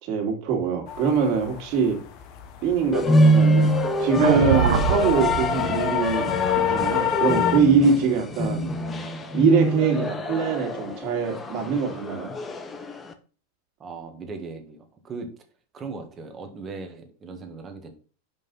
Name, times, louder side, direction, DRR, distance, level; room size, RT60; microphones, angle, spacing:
voice 1, 0.0-2.0 2.6-8.7 9.3-12.3, right 5 dB, 45° right, 2 dB, 2.6 m, -23 dB
sound 1, 0.9-7.6, left 10 dB, 45° left, 1.0 m, -28 dB
sound 2, 2.9-13.1, equal, 15° left, 0.8 m, -25 dB
sound 3, 4.2-8.5, right 8 dB, 80° right, 0.8 m, -27 dB
voice 2, 13.8-15.3 15.7-17.9, right 4 dB, 20° right, 5 dB, 1.6 m, -38 dB
5.6 x 5.3 x 5.5 m, 0.38 s
supercardioid pair, 140°, 0 cm